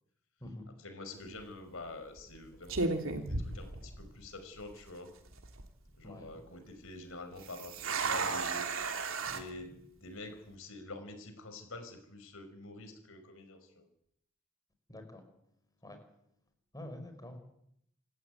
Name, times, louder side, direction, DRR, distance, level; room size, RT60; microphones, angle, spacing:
voice 1, 0.7-2.9 3.3-5.1 6.0-8.7 9.2-13.8, left 2 dB, 70° left, 8 dB, 5.4 m, -47 dB
sound 1, 1.1-1.4 2.2-2.4 2.7-4.3 4.6-4.7 5.3-5.7 7.4-9.4, right 3 dB, 70° right, 3.3 m, -34 dB
voice 2, 14.9-15.2 15.8-16.0 16.7-17.4, left 1 dB, 20° left, 7 dB, 5.4 m, -46 dB
27.5 x 14.5 x 9.5 m, 0.73 s
head